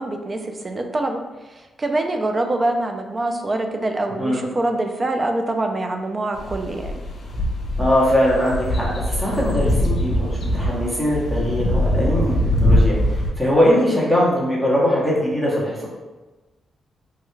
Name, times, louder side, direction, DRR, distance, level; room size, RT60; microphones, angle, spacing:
voice 1, 0.0-6.9, right 2 dB, 30° right, 4 dB, 0.4 m, -25 dB
sound 1, 6.3-13.3, left 1 dB, 60° left, 0.6 m, -22 dB
voice 2, 7.8-12.3 12.6-12.9 13.4-15.9, equal, 5° right, -6 dB, 0.9 m, -20 dB
3.2 x 2.3 x 3.1 m, 1.2 s
cardioid pair, 95°, 0 cm